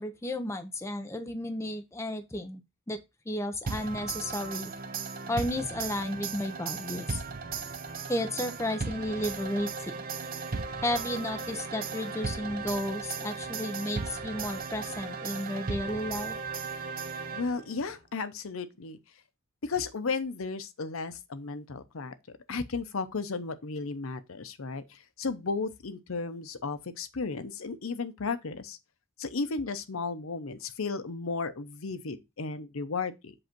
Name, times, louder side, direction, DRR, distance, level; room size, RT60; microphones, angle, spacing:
voice 1, 0.0-2.6 2.9-3.0 3.3-4.7 5.3-7.2 8.1-10.0 10.8-16.4, left 1 dB, 15° left, 0.6 m, -33 dB
sound 1, 3.7-17.8, right 4 dB, 40° right, 0.6 m, -36 dB
voice 2, 17.3-19.0 19.6-22.1 22.5-28.8 29.2-33.3, left 4 dB, 80° left, 0.7 m, -34 dB
7.8 x 2.6 x 5.9 m
head